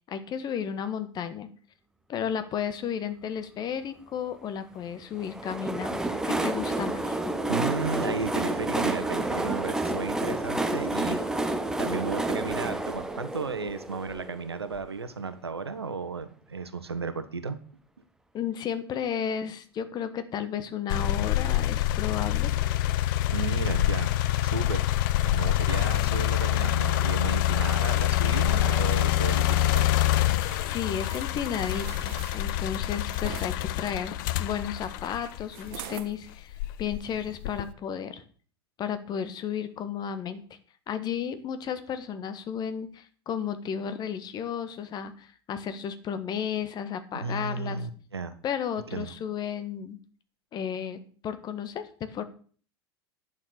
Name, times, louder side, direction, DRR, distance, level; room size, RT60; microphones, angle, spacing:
voice 1, 0.0-1.5 2.1-6.0 6.2-7.2 18.3-22.5 30.6-38.2 38.8-40.4 40.9-47.8 48.4-50.0 50.5-52.2, left 8 dB, 30° left, 11 dB, 1.5 m, -33 dB
Train, 5.2-14.8, right 2 dB, 5° right, 1.2 m, -29 dB
voice 2, 7.5-11.2 11.8-17.6 23.3-24.1 24.4-24.9 25.2-29.9 47.1-48.3 48.9-49.1, right 4 dB, 80° right, 11 dB, 1.2 m, -34 dB
sound 1, 20.9-35.9 36.5-37.7, left 14 dB, 50° left, 0.7 m, -26 dB
sound 2, 29.5-33.5 35.5-36.1 36.7-36.8, right 11 dB, 50° right, 1.4 m, -45 dB
10.5 x 7.1 x 6.7 m, 0.43 s
figure-of-eight pair, 80°, 13 cm